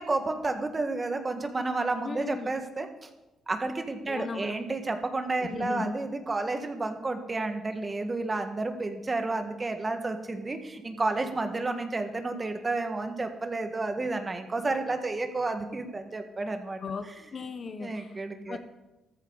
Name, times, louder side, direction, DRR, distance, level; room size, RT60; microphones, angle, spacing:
voice 1, 0.0-3.1 3.5-16.8 17.8-18.6, right 3 dB, 25° right, 6 dB, 1.7 m, -31 dB
voice 2, 2.0-2.5 4.0-4.6 5.4-6.0 16.8-18.2 18.5-18.6, left 5 dB, 45° left, 9 dB, 1.0 m, -37 dB
14.5 x 14.0 x 4.0 m, 1.0 s
cardioid pair, 90°, 0 cm